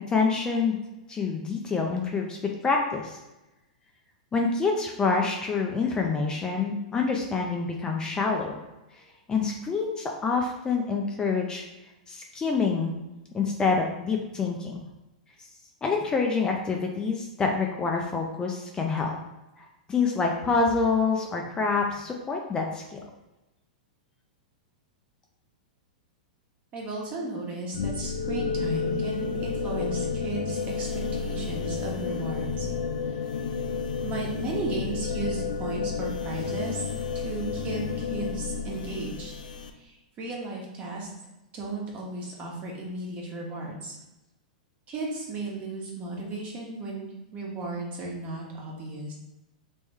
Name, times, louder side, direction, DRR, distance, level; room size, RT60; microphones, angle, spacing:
voice 1, 0.1-0.8 1.1-2.4 2.6-3.2 4.3-8.6 8.9-9.0 9.3-11.6 12.1-12.9 13.3-14.8 15.8-19.2 19.6-23.0, left 4 dB, 15° left, 1 dB, 0.5 m, -27 dB
voice 2, 26.7-32.7 33.0-33.2 34.0-36.9 37.1-39.3 39.7-41.1 41.5-43.9 44.9-49.1, right 2 dB, 35° right, -2 dB, 1.2 m, -35 dB
sound 1, 27.7-39.7, left 5 dB, 85° left, 0.4 m, -31 dB
3.1 x 3.0 x 3.4 m, 0.98 s
hypercardioid pair, 120°, 4 cm